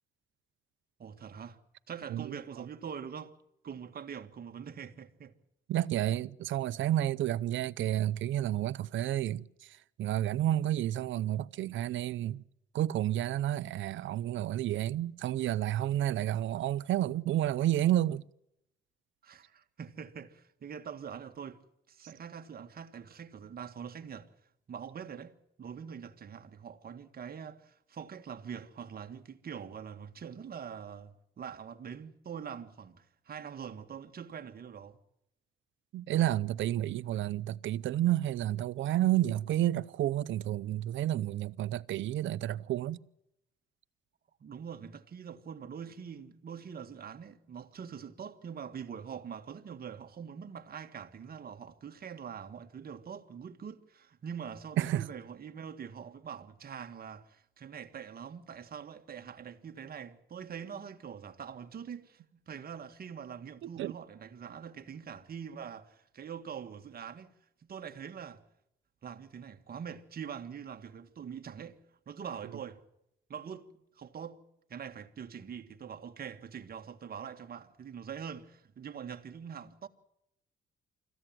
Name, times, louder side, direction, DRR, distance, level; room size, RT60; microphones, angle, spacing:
voice 1, 1.0-1.6 1.9-3.3 3.6-5.3 19.2-21.6 21.9-24.3 24.7-35.0 44.4-67.3 67.6-68.4 69.0-71.8 72.1-72.8 73.3-73.7 73.9-74.4 74.7-79.9, right 7 dB, 50° right, 1.8 m, -44 dB
voice 2, 5.7-12.4 12.7-18.2 35.9-43.0 54.8-55.1 63.6-63.9, right 13 dB, 75° right, 0.7 m, -30 dB
25.5 x 15.0 x 7.7 m
cardioid pair, 90°, 20 cm